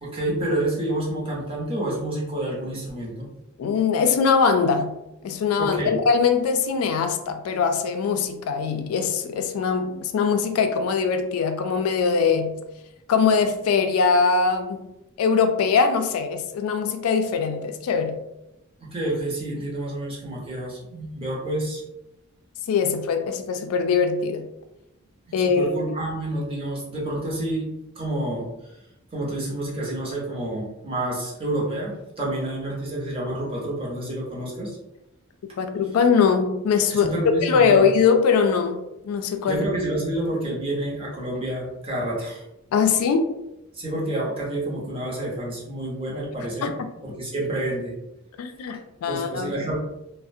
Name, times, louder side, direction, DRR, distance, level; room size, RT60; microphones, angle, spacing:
voice 1, 0.0-3.3 5.6-5.9 18.8-21.8 25.3-27.7 27.9-28.7 29.1-34.8 36.9-37.8 39.4-42.4 43.7-46.7 47.0-47.9 49.1-49.7, right 1 dB, 25° right, -4 dB, 0.7 m, -29 dB
voice 2, 3.6-4.9 5.2-12.6 13.1-14.9 15.2-18.2 22.7-24.5 25.3-25.7 35.6-37.1 37.4-39.6 42.7-43.3 46.6-46.7 48.4-49.5, left 5 dB, 80° left, 8 dB, 0.3 m, -22 dB
2.4 x 2.0 x 2.6 m, 0.91 s
head